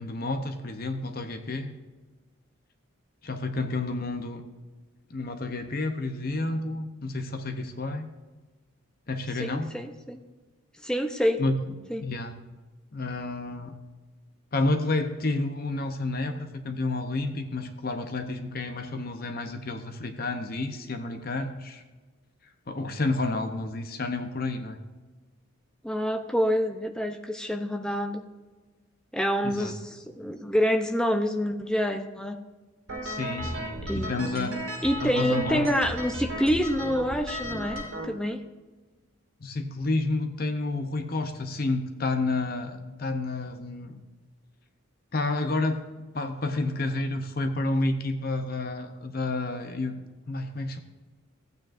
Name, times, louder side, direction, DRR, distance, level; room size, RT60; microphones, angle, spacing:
voice 1, 0.0-1.7 3.2-4.4 5.1-8.1 9.1-9.7 11.4-11.8 12.0-12.4 12.9-13.8 14.5-21.8 22.7-24.8 29.4-29.7 33.0-34.5 35.0-35.7 39.4-44.0 45.1-49.9 50.3-50.8, left 2 dB, 45° left, 7 dB, 0.7 m, -30 dB
voice 2, 9.4-10.2 10.8-11.4 11.9-12.1 25.8-28.2 29.1-32.4 33.8-38.4, equal, 5° left, 5 dB, 0.5 m, -27 dB
sound 1, 32.9-38.0, equal, 75° right, 2.4 m, -35 dB
14.5 x 8.8 x 2.5 m, 1.3 s
head